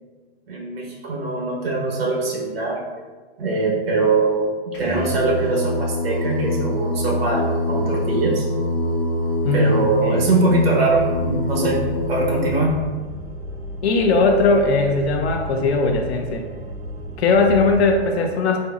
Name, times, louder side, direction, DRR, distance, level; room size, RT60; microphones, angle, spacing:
voice 1, 0.5-2.8 3.4-4.5 4.8-8.5 9.5-11.8 12.1-12.8, right 3 dB, 65° right, -2 dB, 1.2 m, -22 dB
Singing, 4.7-12.6, left 1 dB, 60° left, 1.1 m, -24 dB
voice 2, 9.4-10.2 13.8-16.4 17.2-18.6, left 3 dB, 80° left, 2 dB, 0.6 m, -19 dB
sound 1, 10.9-17.9, right 1 dB, 90° right, 0.6 m, -34 dB
4.3 x 2.6 x 2.4 m, 1.4 s
hypercardioid pair, 180°, 32 cm